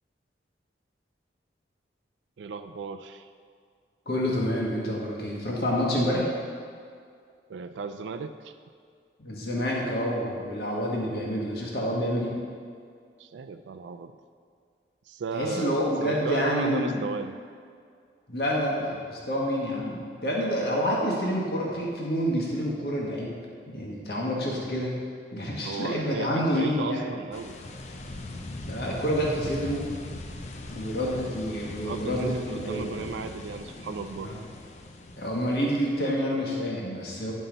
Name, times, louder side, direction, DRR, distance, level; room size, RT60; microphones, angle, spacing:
voice 1, 2.4-3.3 7.5-8.5 13.2-14.1 15.1-17.3 25.6-27.6 31.8-34.3, right 4 dB, 85° right, 8 dB, 0.4 m, -35 dB
voice 2, 4.0-6.3 9.2-12.3 15.3-17.0 18.3-23.3 23.7-25.0 25.3-27.0 28.7-29.9 30.7-32.8 34.2-34.4 35.1-37.3, equal, 60° left, -3 dB, 1.4 m, -28 dB
sound 1, 27.3-36.0, left 2 dB, 40° left, 0.5 m, -40 dB
11.0 x 5.4 x 3.9 m, 2.2 s
head